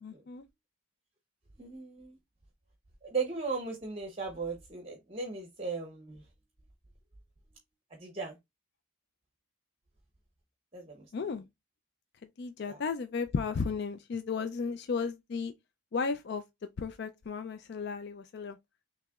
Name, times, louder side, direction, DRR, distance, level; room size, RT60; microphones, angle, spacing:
voice 1, 0.0-0.4 11.1-11.4 12.4-15.5 15.9-16.4 16.8-18.6, left 5 dB, 50° left, 0.3 m, -34 dB
voice 2, 1.6-2.2 3.0-6.2 7.9-8.4 10.7-11.4 12.7-12.8, right 4 dB, 30° right, 0.8 m, -37 dB
6.4 x 2.9 x 2.4 m
head